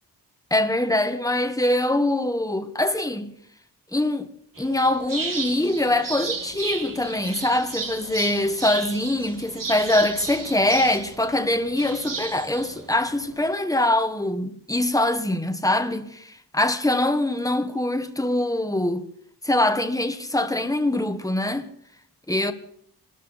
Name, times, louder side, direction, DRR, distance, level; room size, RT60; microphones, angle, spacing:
voice 1, 0.5-3.3 3.9-4.3 4.6-19.1 19.4-21.7 22.3-22.5, left 1 dB, 10° left, 1.3 m, -23 dB
sound 1, 4.5-13.5, right 4 dB, 50° right, 2.2 m, -34 dB
26.0 x 13.0 x 4.1 m
wide cardioid pair, 105°, 41 cm